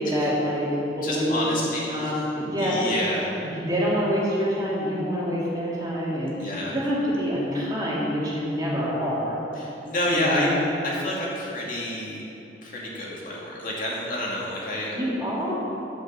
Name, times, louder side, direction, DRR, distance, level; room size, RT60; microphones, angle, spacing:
voice 1, 0.0-1.6 1.9-2.9 3.4-9.4 10.0-10.6 14.9-15.5, equal, 20° right, -6 dB, 2.5 m, -26 dB
voice 2, 1.0-2.1 2.6-3.3 6.4-6.8 9.5-10.5 10.8-12.2 12.6-14.9, left 1 dB, 50° left, -5 dB, 2.3 m, -29 dB
8.7 x 7.9 x 7.5 m, 2.9 s
head